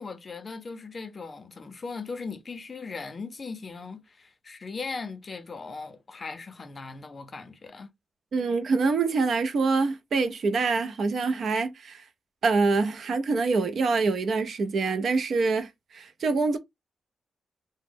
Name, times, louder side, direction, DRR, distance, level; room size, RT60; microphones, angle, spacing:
voice 1, 0.0-7.9, left 4 dB, 35° left, 0.5 m, -38 dB
voice 2, 8.3-12.0 12.4-16.6, right 4 dB, 60° right, 0.5 m, -25 dB
2.9 x 2.0 x 3.4 m
wide cardioid pair, 145°, 0 cm